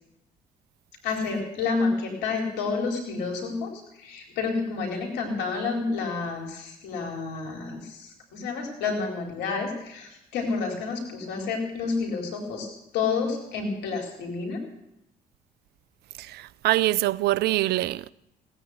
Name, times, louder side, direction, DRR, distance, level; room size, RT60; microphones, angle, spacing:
voice 1, 1.0-12.7 12.9-14.6, left 4 dB, 80° left, 4.2 m, -29 dB
voice 2, 16.2-18.1, right 16 dB, 70° right, 0.6 m, -24 dB
17.5 x 9.9 x 8.0 m
hypercardioid pair, 60°, 17 cm